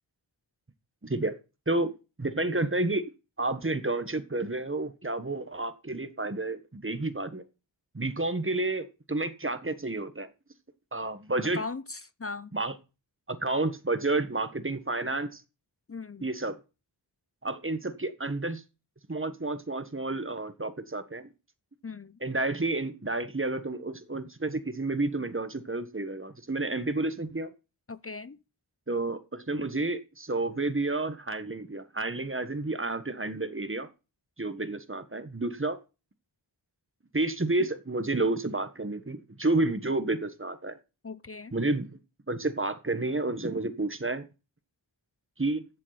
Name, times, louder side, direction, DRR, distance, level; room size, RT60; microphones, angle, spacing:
voice 1, 1.0-1.4 1.7-1.9 2.2-3.0 3.4-7.4 7.9-10.3 10.9-11.6 12.5-12.7 13.3-15.4 16.2-16.6 17.4-18.6 19.1-21.3 22.2-27.5 28.9-33.9 34.4-35.8 37.1-40.8 41.5-41.9 42.3-44.2 45.4-45.7, right 2 dB, 25° right, 1.4 m, -30 dB
voice 2, 11.5-12.5 15.9-16.3 21.8-22.2 27.9-28.4 41.0-41.5, left 4 dB, 30° left, 0.6 m, -39 dB
14.5 x 7.4 x 4.1 m
wide cardioid pair, 45°, 45 cm